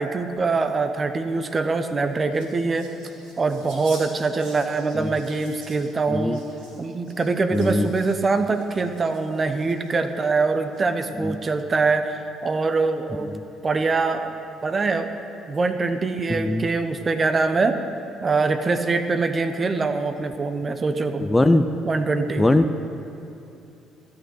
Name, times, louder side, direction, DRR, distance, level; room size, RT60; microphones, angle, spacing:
voice 1, 0.0-2.9 3.4-6.4 6.8-13.4 13.6-14.3 14.6-15.2 15.5-17.8 18.2-21.3 21.8-22.5, right 3 dB, 35° right, 9 dB, 0.9 m, -23 dB
sound 1, 1.9-10.1 10.7-11.3, right 2 dB, 70° right, 2.9 m, -48 dB
voice 2, 7.5-7.9 11.2-11.4 16.3-16.7 21.2-21.6 22.4-22.8, left 1 dB, 15° left, 9 dB, 0.6 m, -20 dB
14.0 x 6.8 x 8.1 m, 2.7 s
figure-of-eight pair, 45°, 0 cm